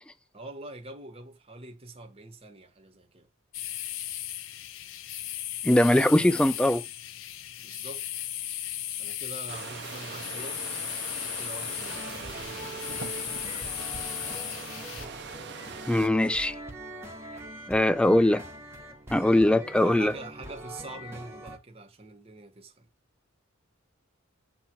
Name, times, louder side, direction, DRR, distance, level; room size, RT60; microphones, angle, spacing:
voice 1, 0.3-3.3 5.9-6.5 7.6-8.0 9.0-10.7 11.4-12.7 19.6-22.9, right 2 dB, 30° right, 1.1 m, -44 dB
sound 1, 3.5-15.1, left 12 dB, 65° left, 0.5 m, -36 dB
voice 2, 5.6-6.8 15.9-16.6 17.7-18.4 19.1-20.1, left 1 dB, 5° left, 0.4 m, -21 dB
sound 2, 9.5-16.1, right 5 dB, 55° right, 0.7 m, -41 dB
sound 3, 11.9-21.6, right 1 dB, 10° right, 1.1 m, -43 dB
7.2 x 3.0 x 6.0 m
head